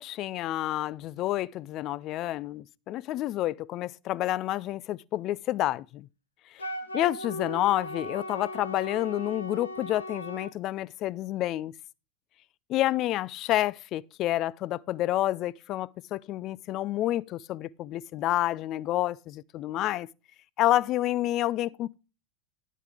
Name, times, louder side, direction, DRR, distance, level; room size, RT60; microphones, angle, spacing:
voice 1, 0.0-6.1 6.5-6.7 6.9-11.7 12.7-20.1 20.6-22.0, left 14 dB, 45° left, 0.4 m, -29 dB
Wind instrument woodwind instrument, 6.6-10.5, equal, 90° left, 1.3 m, -38 dB
10.5 x 8.3 x 3.3 m
hypercardioid pair, 90°, 0 cm